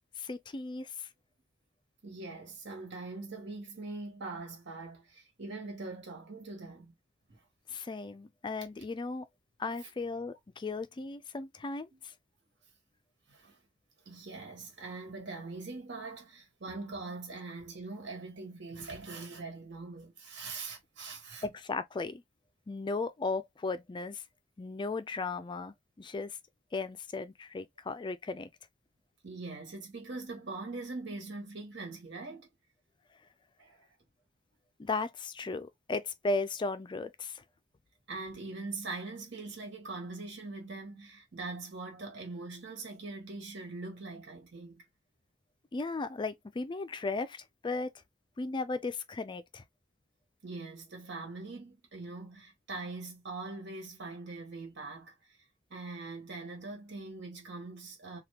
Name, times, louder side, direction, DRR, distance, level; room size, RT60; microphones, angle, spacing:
voice 1, 0.2-1.1 7.7-9.3 9.6-12.1 21.4-22.2 22.7-24.2 24.6-26.4 26.7-28.5 34.8-37.4 45.7-47.9 48.4-49.6, left 3 dB, 25° left, 0.4 m, -36 dB
voice 2, 2.0-6.9 7.3-7.4 9.8-9.9 11.9-12.0 13.3-13.6 14.0-21.5 29.2-32.5 33.6-33.9 38.1-44.8 50.4-55.4 55.7-58.2, right 3 dB, 65° right, 1.4 m, -42 dB
3.4 x 2.3 x 2.8 m
head